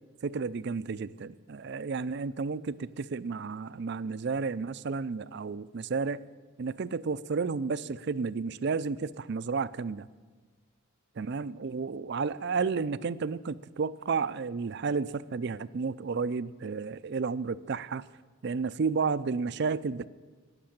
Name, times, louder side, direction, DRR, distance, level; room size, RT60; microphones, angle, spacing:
voice 1, 0.2-6.2 6.6-10.1 11.2-18.0 18.4-20.1, right 5 dB, 50° right, 16 dB, 0.4 m, -32 dB
18.0 x 6.7 x 8.7 m, 1.4 s
head